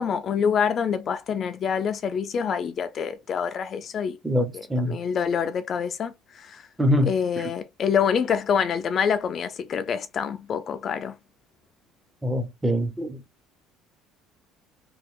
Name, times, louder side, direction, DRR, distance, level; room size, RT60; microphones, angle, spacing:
voice 1, 0.0-4.2 4.5-6.7 7.0-11.1, left 7 dB, 40° left, 0.3 m, -26 dB
voice 2, 4.2-5.0 6.8-7.1 12.2-13.2, equal, 10° right, 0.6 m, -24 dB
3.0 x 2.3 x 3.2 m
cardioid pair, 125°, 0 cm